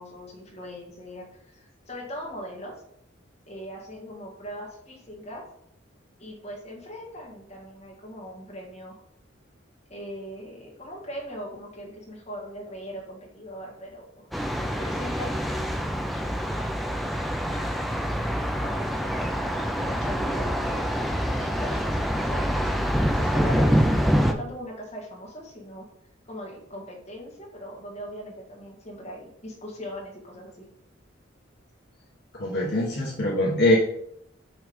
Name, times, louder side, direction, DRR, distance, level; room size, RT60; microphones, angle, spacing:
voice 1, 0.0-2.7 3.5-5.4 6.2-9.0 9.9-14.3 14.7-15.3 18.5-20.8 21.4-22.5 23.0-25.8 26.3-30.6, equal, 35° left, -3 dB, 1.6 m, -40 dB
Thunder, 14.3-24.3, equal, ahead, 0.3 m, -26 dB
voice 2, 32.3-33.8, left 1 dB, 55° left, -5 dB, 1.1 m, -23 dB
5.8 x 3.2 x 5.1 m, 0.72 s
head